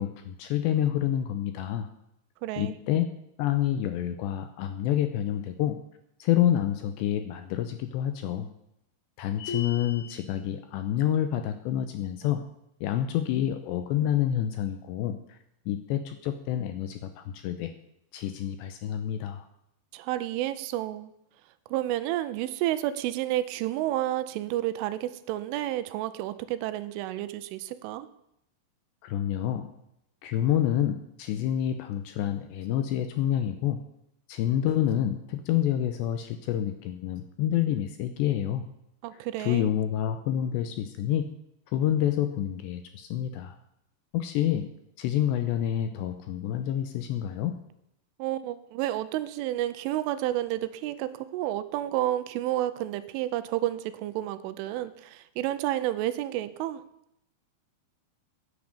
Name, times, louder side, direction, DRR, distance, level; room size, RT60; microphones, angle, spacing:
voice 1, 0.0-1.9 2.6-3.1 3.4-5.8 6.2-8.5 9.2-12.4 12.8-15.4 15.7-17.7 18.1-19.5 29.0-29.7 30.2-33.8 34.3-38.6 39.1-41.3 41.7-43.6 44.1-44.7 45.0-47.6, left 11 dB, 80° left, 8 dB, 2.6 m, -28 dB
voice 2, 2.4-2.7 19.9-21.1 21.7-28.1 39.0-39.7 48.2-56.8, right 14 dB, 85° right, 14 dB, 3.2 m, -30 dB
sound 1, 9.4-10.2, left 5 dB, 55° left, 4.0 m, -36 dB
10.5 x 9.8 x 8.8 m, 0.80 s
omnidirectional pair, 5.7 m